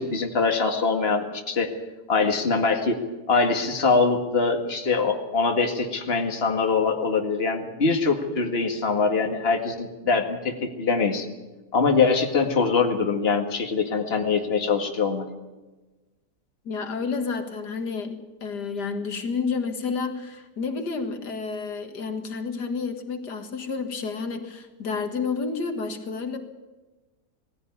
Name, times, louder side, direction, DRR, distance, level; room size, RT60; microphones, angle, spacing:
voice 1, 0.0-1.7 2.1-3.0 3.3-11.3 11.7-15.2, left 4 dB, 40° left, 4 dB, 2.1 m, -23 dB
voice 2, 16.7-26.4, left 5 dB, 85° left, 6 dB, 2.2 m, -30 dB
19.5 x 15.5 x 9.4 m, 1.2 s
omnidirectional pair, 1.7 m